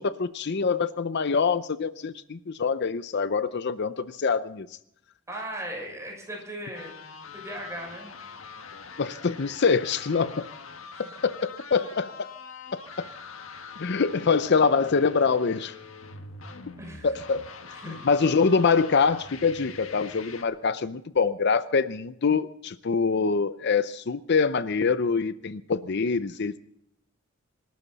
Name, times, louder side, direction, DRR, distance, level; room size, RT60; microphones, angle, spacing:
voice 1, 0.0-4.7 9.0-10.5 11.2-12.3 13.0-13.1 13.8-15.8 17.0-17.5 17.9-26.6, left 5 dB, 55° left, 13 dB, 0.6 m, -25 dB
voice 2, 5.3-6.9 7.3-8.2 10.9-11.0 14.1-14.2 16.8-17.1 17.7-18.0, right 1 dB, 15° right, 0 dB, 6.2 m, -38 dB
sound 1, 6.7-20.4, left 4 dB, 85° left, 1.6 m, -44 dB
26.5 x 12.5 x 4.1 m, 0.74 s
head